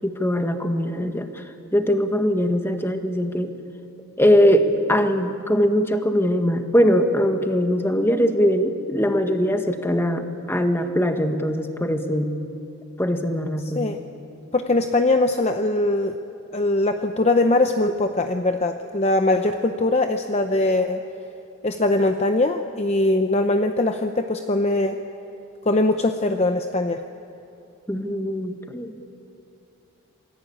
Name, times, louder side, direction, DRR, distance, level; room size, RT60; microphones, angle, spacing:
voice 1, 0.0-1.3 1.7-3.5 4.2-12.3 13.0-13.8 27.9-29.1, equal, 10° left, 6 dB, 1.5 m, -21 dB
voice 2, 13.6-14.0 14.5-16.2 16.5-21.0 21.6-25.0 25.6-27.0, left 2 dB, 30° left, 6 dB, 0.7 m, -21 dB
28.0 x 20.0 x 8.7 m, 2.8 s
head